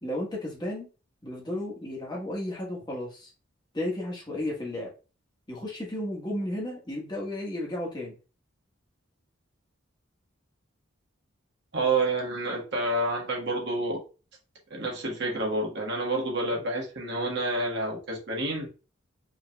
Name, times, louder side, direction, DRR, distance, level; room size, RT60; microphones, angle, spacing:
voice 1, 0.0-0.9 1.2-3.3 3.7-4.9 5.5-8.2, left 1 dB, 20° left, -3 dB, 1.3 m, -33 dB
voice 2, 11.7-14.0 14.7-18.7, right 2 dB, 55° right, -1 dB, 1.4 m, -29 dB
5.0 x 3.4 x 2.3 m, 0.33 s
head